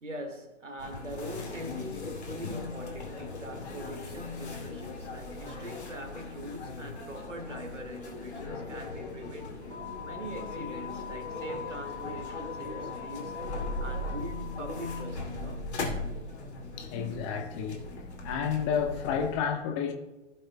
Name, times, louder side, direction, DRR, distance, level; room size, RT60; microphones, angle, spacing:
voice 1, 0.0-9.7 10.0-13.3 13.8-15.8, equal, 80° right, 1.9 m, -42 dB
sound 1, 0.8-19.4, left 3 dB, 65° left, 2.7 m, -38 dB
voice 2, 16.8-17.8 18.2-19.9, left 7 dB, 25° left, 1.0 m, -30 dB
16.0 x 7.8 x 2.2 m
figure-of-eight pair, 125°, 36 cm